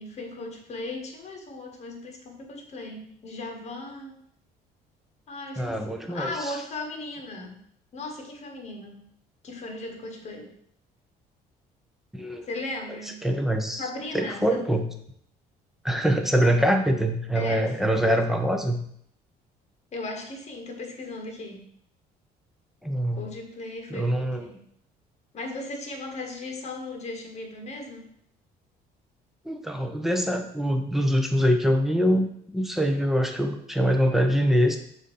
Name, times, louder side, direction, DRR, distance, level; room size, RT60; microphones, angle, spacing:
voice 1, 0.0-4.2 5.3-5.8 6.1-7.6 7.9-9.0 9.4-10.5 12.5-13.2 13.8-14.6 17.3-17.8 19.9-21.7 23.1-24.6 25.3-28.1, left 2 dB, 40° left, 3 dB, 1.4 m, -37 dB
voice 2, 5.6-6.5 12.1-12.5 13.2-13.8 14.1-14.9 15.8-18.8 22.8-23.3 23.9-24.5 29.4-32.3 32.5-34.8, equal, ahead, 4 dB, 0.7 m, -24 dB
7.0 x 2.8 x 5.4 m, 0.68 s
cardioid pair, 110°, 17 cm